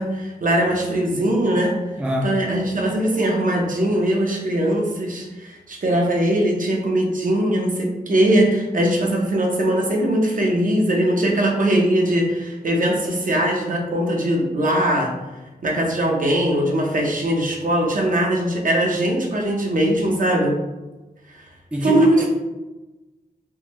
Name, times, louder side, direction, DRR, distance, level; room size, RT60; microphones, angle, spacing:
voice 1, 0.0-1.8 2.2-15.1 15.6-20.6 21.8-22.3, right 1 dB, 55° right, -1 dB, 0.7 m, -20 dB
voice 2, 2.0-2.4 21.7-22.3, equal, 5° right, 0 dB, 0.4 m, -24 dB
3.5 x 2.1 x 3.0 m, 1.1 s
wide cardioid pair, 90°, 16 cm